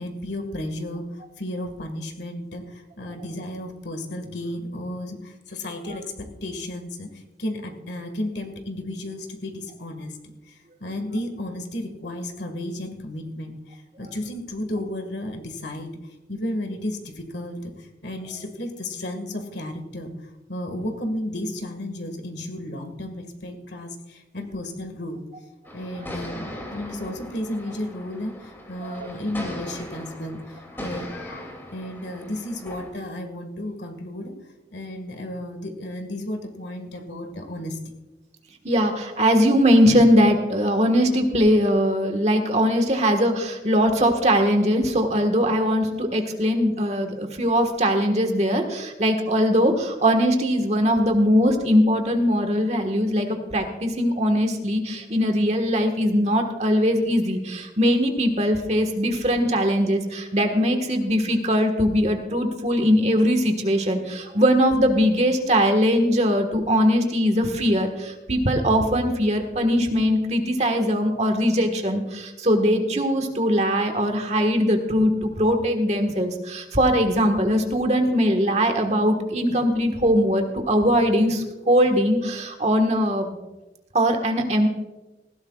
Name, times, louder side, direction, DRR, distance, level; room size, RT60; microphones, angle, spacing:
voice 1, 0.0-10.2 10.5-15.9 16.3-20.1 20.5-25.2 25.7-34.3 34.7-37.8, left 1 dB, 75° left, 5 dB, 1.8 m, -33 dB
sound 1, 25.6-32.9, left 1 dB, 15° left, 2.6 m, -39 dB
voice 2, 38.6-83.4 83.9-84.7, equal, 40° right, 5 dB, 1.5 m, -21 dB
19.0 x 16.0 x 2.4 m, 1.1 s
head